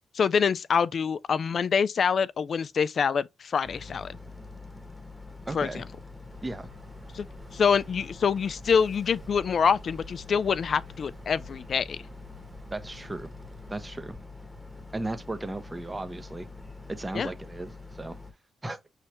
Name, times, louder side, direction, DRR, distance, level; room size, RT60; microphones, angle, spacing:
voice 1, 0.1-4.2 5.5-5.8 7.1-7.3 7.5-12.0 17.1-17.3, left 6 dB, 55° left, 0.3 m, -25 dB
Boat Water vehicle, 3.6-18.3, left 3 dB, 5° left, 1.1 m, -45 dB
voice 2, 5.5-5.9 6.4-6.7 12.7-13.3 13.7-14.2 14.9-16.5 16.9-18.2 18.6-18.8, right 2 dB, 20° right, 0.7 m, -35 dB
sound 1, 6.3-13.8, right 3 dB, 60° right, 1.7 m, -52 dB
5.6 x 3.2 x 2.9 m
cardioid pair, 65°, 0 cm